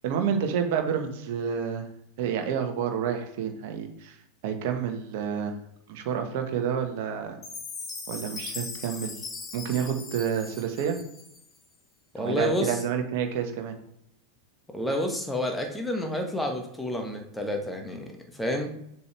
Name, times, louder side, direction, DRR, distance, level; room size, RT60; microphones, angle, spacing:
voice 1, 0.0-1.9 2.2-4.2 4.4-5.5 5.9-7.4 8.1-9.2 9.5-11.0 12.2-13.8, right 7 dB, 50° right, 5 dB, 1.2 m, -29 dB
Chime, 7.4-11.6, left 4 dB, 25° left, 1.4 m, -39 dB
voice 2, 12.1-12.8 14.7-18.1 18.4-18.7, left 1 dB, 5° left, 3 dB, 1.5 m, -29 dB
7.2 x 6.9 x 3.3 m, 0.77 s
figure-of-eight pair, 90°, 0 cm